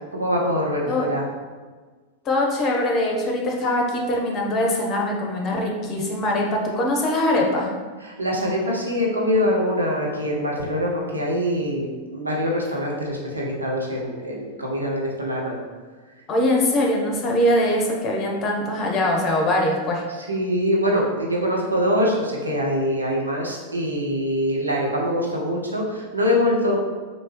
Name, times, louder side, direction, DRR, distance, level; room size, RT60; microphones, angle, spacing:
voice 1, 0.1-1.3 8.0-15.6 20.1-26.8, equal, 80° right, -2 dB, 0.6 m, -24 dB
voice 2, 2.2-7.7 16.3-20.0, left 1 dB, 30° left, 0 dB, 0.7 m, -22 dB
3.4 x 2.8 x 2.9 m, 1.4 s
figure-of-eight pair, 90°, 0 cm